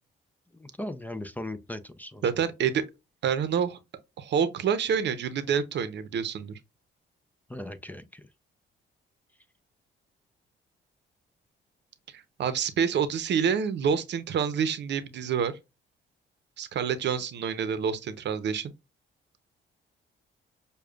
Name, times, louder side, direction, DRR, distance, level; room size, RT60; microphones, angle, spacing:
voice 1, 0.5-2.3 7.5-8.3, left 1 dB, 10° left, 0.5 m, -38 dB
voice 2, 2.2-2.8 3.2-3.8 4.2-6.5 12.1-15.5 16.6-18.7, right 7 dB, 60° right, 0.7 m, -27 dB
6.5 x 2.3 x 2.3 m
cardioid pair, 90°, 20 cm